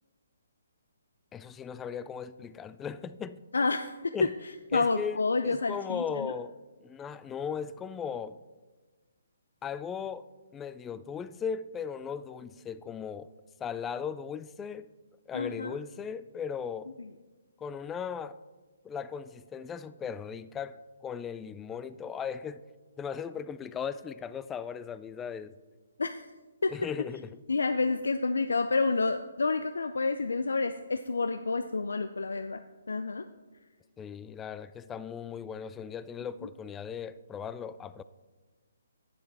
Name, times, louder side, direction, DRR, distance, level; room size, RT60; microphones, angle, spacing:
voice 1, 1.3-3.4 4.1-4.3 4.7-6.5 6.8-8.4 9.6-10.3 10.5-13.3 13.6-14.9 15.3-16.9 17.6-18.4 18.8-22.6 23.0-25.5 26.7-27.4 34.0-38.0, left 7 dB, 15° left, 0.3 m, -37 dB
voice 2, 3.5-4.1 4.7-6.3 15.3-15.8 26.0-26.3 26.6-26.7 27.5-32.6 32.9-33.3, left 3 dB, 85° left, 0.4 m, -29 dB
11.5 x 9.5 x 3.4 m
hypercardioid pair, 150°, 0 cm